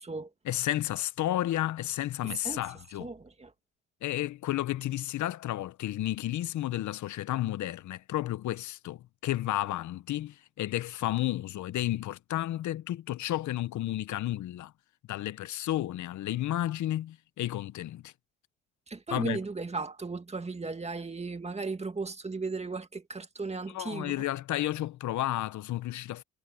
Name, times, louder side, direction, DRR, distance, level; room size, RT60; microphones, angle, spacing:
voice 1, 0.4-3.1 4.0-14.7 15.1-18.1 19.1-19.4 23.7-26.2, left 14 dB, 75° left, 0.9 m, -32 dB
voice 2, 2.2-2.6 3.0-3.5 18.9-24.2, right 3 dB, 20° right, 2.0 m, -36 dB
cardioid pair, 90°, 30 cm